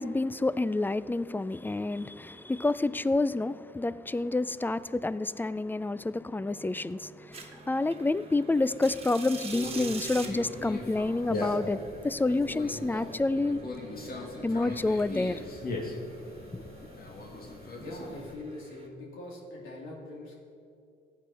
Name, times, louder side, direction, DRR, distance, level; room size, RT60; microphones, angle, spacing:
voice 1, 0.0-13.6 14.4-15.4 16.5-16.6, left 2 dB, 10° left, 0.3 m, -29 dB
sound 1, 6.2-16.0, right 2 dB, 10° right, 2.4 m, -55 dB
sound 2, 7.3-18.9, right 4 dB, 30° right, 1.6 m, -47 dB
Conversation, 9.5-18.3, left 2 dB, 50° left, 2.1 m, -39 dB
voice 2, 17.8-20.6, left 1 dB, 85° left, 3.0 m, -42 dB
15.5 x 9.4 x 4.2 m
cardioid pair, 90°, 20 cm